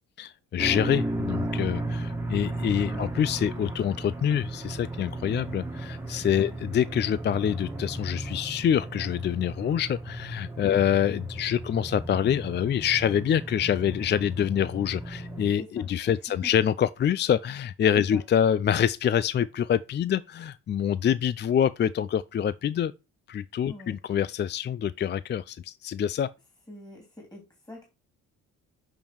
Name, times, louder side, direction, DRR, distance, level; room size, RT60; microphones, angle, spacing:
voice 1, 0.2-22.9 23.3-26.3, left 9 dB, 35° left, 0.4 m, -26 dB
sound 1, 0.6-15.5, right 2 dB, 5° right, 1.7 m, -35 dB
voice 2, 15.5-16.5 18.0-18.2 23.7-24.0 26.7-27.9, left 1 dB, 15° left, 3.0 m, -45 dB
7.0 x 5.5 x 4.6 m
cardioid pair, 90°, 30 cm